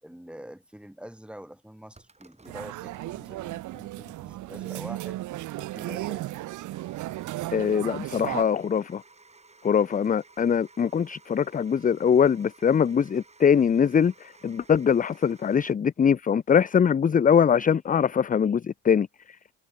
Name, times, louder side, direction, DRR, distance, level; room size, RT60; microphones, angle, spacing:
voice 1, 0.0-5.2 5.6-6.5, equal, 5° right, 6.9 m, -45 dB
sound 1, 1.9-15.7, right 3 dB, 20° right, 6.2 m, -57 dB
sound 2, 2.5-8.4, right 17 dB, 80° right, 0.7 m, -35 dB
voice 2, 7.5-9.0 9.6-19.1, left 7 dB, 25° left, 0.5 m, -22 dB
cardioid pair, 90°, 30 cm